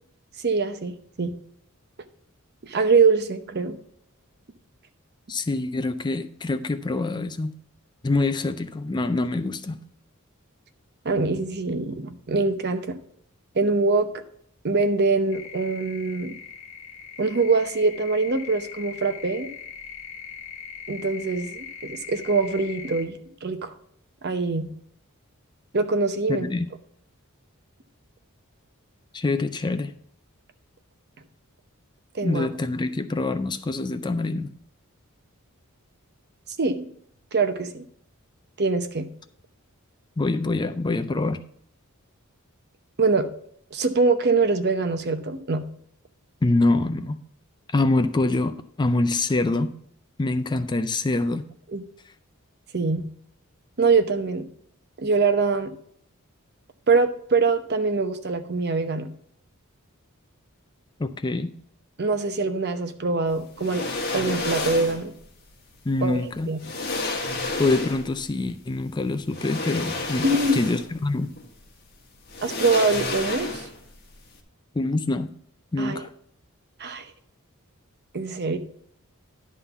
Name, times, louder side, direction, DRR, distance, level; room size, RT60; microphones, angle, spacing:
voice 1, 0.4-0.9 1.2-1.3 2.6-3.8 11.0-13.0 13.5-14.2 14.6-16.4 17.2-19.5 20.9-23.1 23.4-23.7 24.2-24.7 25.7-26.5 32.1-32.5 36.6-36.9 37.3-37.8 38.6-39.1 43.0-43.3 43.7-45.7 51.7-51.8 52.7-53.1 53.8-54.5 55.0-55.7 56.9-59.1 62.0-63.8 64.1-65.1 66.0-66.2 66.5-66.6 70.2-70.5 72.4-73.6 75.8-76.0 76.8-77.1 78.1-78.6, right 4 dB, 50° right, 8 dB, 0.8 m, -23 dB
voice 2, 5.3-7.5 8.0-9.8 26.3-26.7 29.1-29.9 32.2-34.5 40.2-41.4 46.4-47.2 47.7-49.7 50.2-51.5 61.0-61.5 65.9-66.6 67.6-70.3 70.5-71.3 74.7-75.3 75.7-76.1, left 2 dB, 20° left, 10 dB, 0.4 m, -25 dB
sound 1, 15.3-23.0, left 7 dB, 65° left, 1.1 m, -40 dB
sound 2, 63.6-65.1 66.1-66.2 66.6-68.2 69.3-71.0 71.4-71.5 72.3-73.9 74.2-74.3, left 2 dB, 45° left, 1.6 m, -30 dB
11.0 x 3.7 x 6.9 m, 0.65 s
head